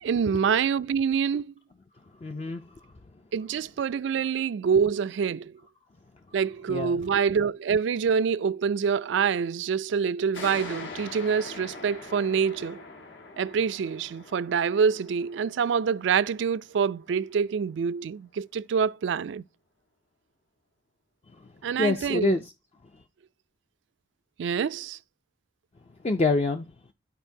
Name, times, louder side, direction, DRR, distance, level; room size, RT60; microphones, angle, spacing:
voice 1, 0.0-1.5 3.3-5.5 6.3-12.8 13.4-19.4 21.6-22.4 24.4-25.0, right 6 dB, 75° right, 0.3 m, -26 dB
voice 2, 2.2-2.6 6.7-7.0 21.4-21.5 21.8-22.4 26.0-26.7, left 3 dB, 35° left, 0.4 m, -26 dB
sound 1, 10.3-17.5, left 3 dB, 85° left, 1.5 m, -43 dB
12.5 x 4.4 x 2.7 m
head